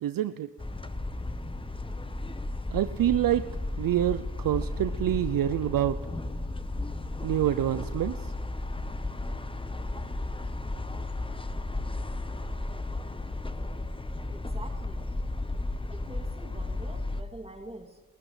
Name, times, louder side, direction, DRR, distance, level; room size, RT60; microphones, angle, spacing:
voice 1, 0.0-0.5 2.7-3.5 3.8-6.0 7.2-8.2, right 12 dB, 60° right, 12 dB, 0.6 m, -26 dB
sound 1, 0.6-17.2, left 2 dB, 15° left, 1.1 m, -34 dB
voice 2, 14.3-15.1 15.9-18.0, right 2 dB, 15° right, 3 dB, 2.8 m, -46 dB
28.5 x 14.5 x 3.3 m, 1.4 s
hypercardioid pair, 40°, 40 cm